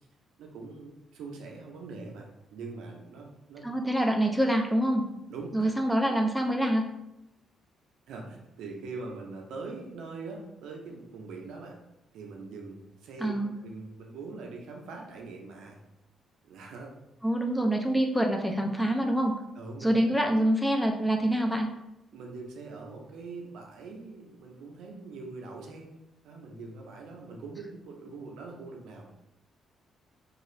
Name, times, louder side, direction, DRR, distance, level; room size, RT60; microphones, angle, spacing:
voice 1, 0.4-3.7 5.3-5.7 6.1-6.2 8.1-11.8 12.1-13.4 13.6-15.8 16.4-16.9 19.6-20.1 22.1-25.9 26.2-29.2, right 3 dB, 85° right, 1 dB, 0.5 m, -42 dB
voice 2, 3.6-5.0 5.5-6.8 13.2-13.5 17.2-19.3 19.8-21.7, right 1 dB, ahead, 2 dB, 0.4 m, -26 dB
2.4 x 2.4 x 3.1 m, 0.87 s
cardioid pair, 90°, 0 cm